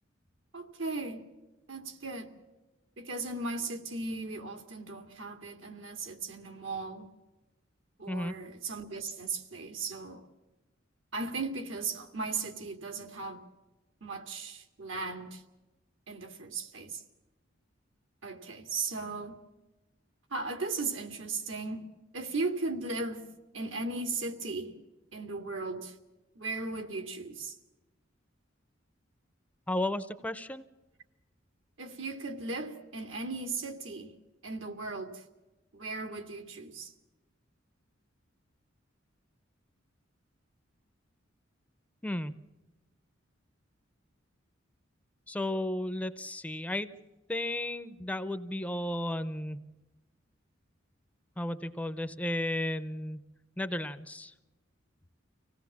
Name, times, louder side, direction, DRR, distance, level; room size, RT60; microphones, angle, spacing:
voice 1, 0.5-1.2 1.7-2.3 3.0-7.1 8.0-10.3 11.1-13.4 14.0-15.4 16.1-17.0 18.2-19.4 20.3-21.9 22.1-23.3 23.5-24.7 25.1-26.0 26.4-27.6 31.8-34.1 34.4-35.2 35.7-36.9, right 3 dB, 75° right, 5 dB, 2.2 m, -37 dB
voice 2, 29.7-30.7 42.0-42.3 45.3-46.9 47.3-49.6 51.4-53.3 53.6-54.3, left 1 dB, 5° left, 12 dB, 0.6 m, -34 dB
25.0 x 17.5 x 7.2 m, 1.1 s
head